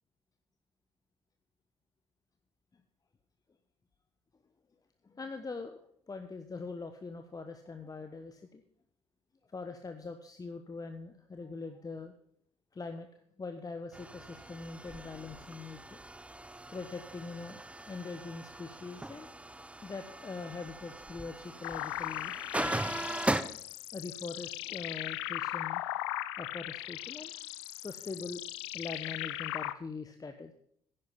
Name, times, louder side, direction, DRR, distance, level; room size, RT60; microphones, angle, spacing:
voice 1, 5.0-5.8 6.1-8.6 9.5-12.1 12.7-13.1 13.4-16.0 16.7-19.3 19.8-23.0 23.9-25.8 26.4-27.3 27.8-28.4 28.7-30.5, left 4 dB, 25° left, 7 dB, 1.0 m, -42 dB
sound 1, 13.9-23.4, right 1 dB, 10° right, 0.8 m, -39 dB
sound 2, 21.6-29.7, left 16 dB, 75° left, 0.5 m, -38 dB
10.5 x 10.0 x 5.8 m, 0.66 s
figure-of-eight pair, 45°, 14 cm